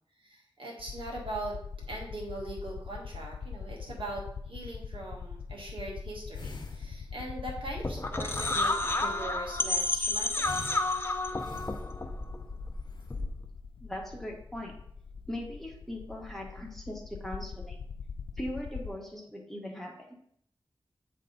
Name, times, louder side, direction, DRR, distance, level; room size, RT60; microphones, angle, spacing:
voice 1, 0.2-1.6 1.9-8.7 9.0-10.5, right 2 dB, 75° right, -2 dB, 1.7 m, -40 dB
sound 1, 0.8-18.9, left 6 dB, 80° left, 0.4 m, -43 dB
sound 2, 6.3-7.3 8.3-9.2 10.4-12.3 12.8-13.2, left 2 dB, 55° left, 0.9 m, -46 dB
sound 3, 7.6-13.4, left 2 dB, 25° left, 0.6 m, -31 dB
voice 2, 13.8-14.7 15.3-17.8 18.4-19.9, left 1 dB, 5° left, -2 dB, 1.5 m, -39 dB
8.8 x 3.4 x 4.0 m, 0.68 s
wide cardioid pair, 80°, 9 cm